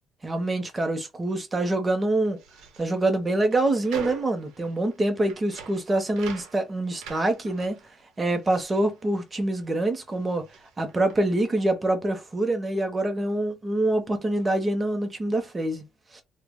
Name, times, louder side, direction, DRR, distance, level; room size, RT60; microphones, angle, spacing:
voice 1, 0.2-2.4 2.8-7.8 8.2-10.5 10.8-15.8 16.1-16.2, right 2 dB, 20° right, 0.6 m, -25 dB
sound 1, 2.3-9.8 10.0-11.5, right 7 dB, 85° right, 0.7 m, -44 dB
2.1 x 2.0 x 3.5 m
cardioid pair, 135°, 0 cm